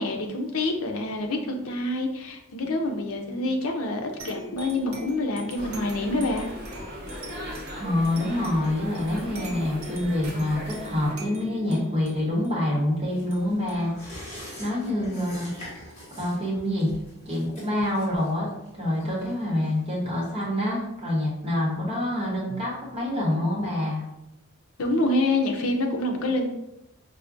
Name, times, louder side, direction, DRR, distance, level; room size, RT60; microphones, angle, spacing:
voice 1, 0.0-6.5 24.8-26.5, left 2 dB, 75° left, 3 dB, 0.5 m, -27 dB
sound 1, 4.2-15.3, left 1 dB, 75° right, 0.9 m, -43 dB
sound 2, 5.5-11.1, equal, 45° right, 0.7 m, -39 dB
voice 2, 7.7-13.9 14.6-15.5 16.2-16.9 17.3-18.5 18.8-24.0, left 1 dB, 25° right, -5 dB, 1.0 m, -26 dB
sound 3, 13.1-20.2 20.5-20.6, equal, 30° left, 1.1 m, -44 dB
4.6 x 2.2 x 2.5 m, 0.85 s
head